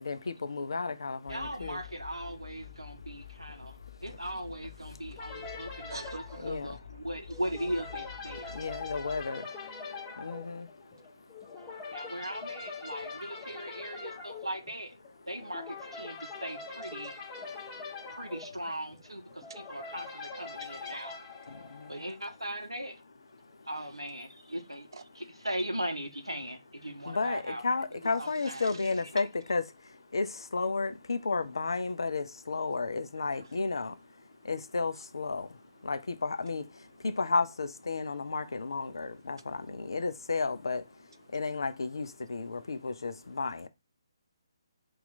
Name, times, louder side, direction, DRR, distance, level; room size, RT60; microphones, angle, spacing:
voice 1, 0.0-1.8 6.4-6.7 8.6-9.4 10.2-10.7 27.1-29.6 30.1-33.9 34.5-35.5 35.8-36.6 37.0-40.8 41.3-43.7, left 4 dB, 60° left, 0.4 m, -32 dB
sound 1, 1.3-10.3, left 10 dB, 35° left, 1.2 m, -49 dB
voice 2, 1.3-3.8 4.0-8.6 11.9-14.9 15.3-17.1 18.1-19.2 19.5-21.2 21.9-23.0 23.7-24.9 25.1-27.6 28.2-28.7 29.1-29.3, right 1 dB, 85° right, 0.7 m, -38 dB
sound 2, 5.2-22.4, left 4 dB, 15° left, 0.8 m, -43 dB
voice 3, 5.9-6.5 8.5-8.8 17.0-17.3 18.1-18.2 24.9-25.0 28.4-28.9 33.2-33.5 34.3-34.5 38.9-39.9 41.2-41.4 42.4-43.3, right 4 dB, 55° right, 0.3 m, -51 dB
2.8 x 2.4 x 3.9 m
figure-of-eight pair, 140°, 3 cm